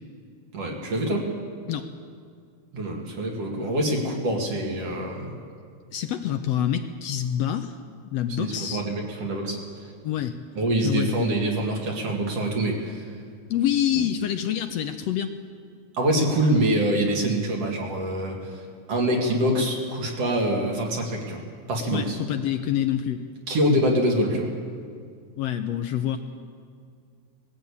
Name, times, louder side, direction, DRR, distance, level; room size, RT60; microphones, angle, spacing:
voice 1, 0.5-1.3 2.7-5.3 8.4-9.6 10.5-13.0 15.9-18.6 18.9-22.2 23.5-24.5, right 1 dB, 55° right, 0 dB, 3.3 m, -25 dB
voice 2, 5.9-7.8 8.0-8.8 10.0-10.4 10.8-11.3 13.5-15.3 21.9-23.2 25.4-26.2, left 10 dB, 75° left, 7 dB, 1.7 m, -26 dB
20.0 x 15.0 x 8.6 m, 2.2 s
omnidirectional pair, 3.3 m